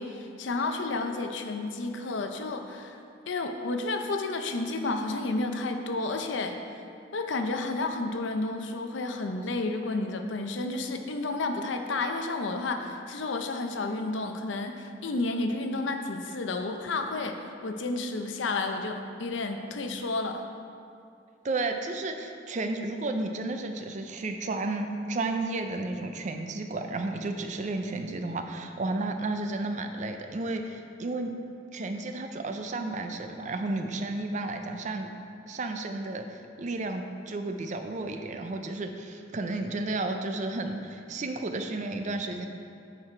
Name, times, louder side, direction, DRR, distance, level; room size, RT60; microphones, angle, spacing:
voice 1, 0.0-3.0 3.3-6.6 7.1-20.4, left 2 dB, 70° left, 5 dB, 0.6 m, -31 dB
voice 2, 21.4-31.3 31.7-35.1 35.5-42.5, right 2 dB, 40° right, 6 dB, 0.4 m, -32 dB
9.7 x 4.8 x 4.3 m, 2.5 s
head